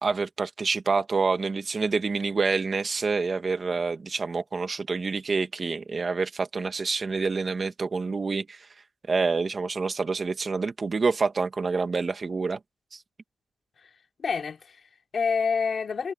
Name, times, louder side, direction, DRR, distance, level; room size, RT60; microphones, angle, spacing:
voice 1, 0.0-8.6 9.1-12.6 12.9-13.0, right 4 dB, 30° right, 1.7 m, -27 dB
voice 2, 14.2-16.1, left 5 dB, 40° left, 4.2 m, -28 dB
wide cardioid pair, 145°, 0 cm